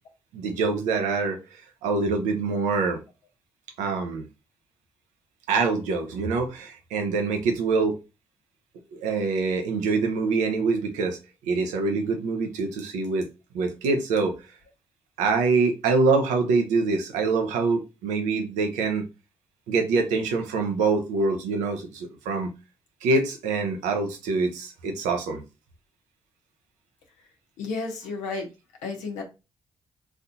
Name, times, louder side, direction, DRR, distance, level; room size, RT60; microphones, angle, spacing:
voice 1, 0.3-3.0 3.8-4.3 5.5-8.0 8.9-11.2 11.4-13.3 13.5-14.3 15.2-19.1 19.7-22.5 23.0-25.4, right 4 dB, 85° right, 0.6 m, -25 dB
voice 2, 27.6-28.5 28.8-29.2, left 4 dB, 85° left, 0.9 m, -32 dB
4.1 x 2.7 x 2.7 m
hypercardioid pair, 40°, 12 cm